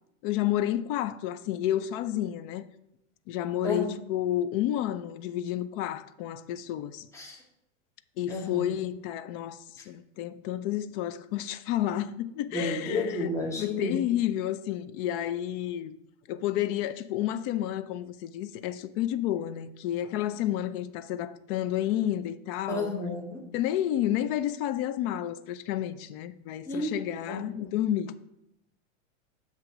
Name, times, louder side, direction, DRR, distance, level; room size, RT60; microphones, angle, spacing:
voice 1, 0.2-2.7 3.3-7.1 8.2-15.9 16.3-22.9 23.5-28.1, left 12 dB, 45° left, 0.5 m, -30 dB
voice 2, 3.6-4.0 7.1-7.4 8.3-8.6 12.5-14.0 22.7-23.4 26.7-27.0 27.3-27.5, left 1 dB, 5° left, 1.3 m, -32 dB
7.7 x 2.9 x 5.7 m
hypercardioid pair, 120°, 39 cm